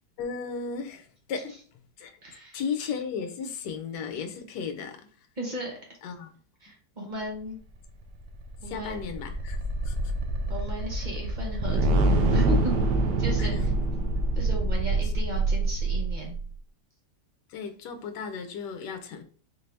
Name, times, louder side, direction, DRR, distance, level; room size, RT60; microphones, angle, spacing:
voice 1, 0.2-1.5 2.0-2.2 2.5-5.3 6.0-6.3 8.6-9.6 9.8-10.0 13.4-13.7 15.0-15.1 17.5-19.2, left 6 dB, 75° left, 1.2 m, -35 dB
voice 2, 2.2-2.6 5.4-5.7 6.6-7.6 8.6-9.1 10.5-12.7 13.2-13.5 14.3-16.4, right 1 dB, 35° right, 0.8 m, -35 dB
sound 1, 8.1-16.5, right 2 dB, 75° right, 1.3 m, -25 dB
4.5 x 2.6 x 3.3 m
omnidirectional pair, 1.9 m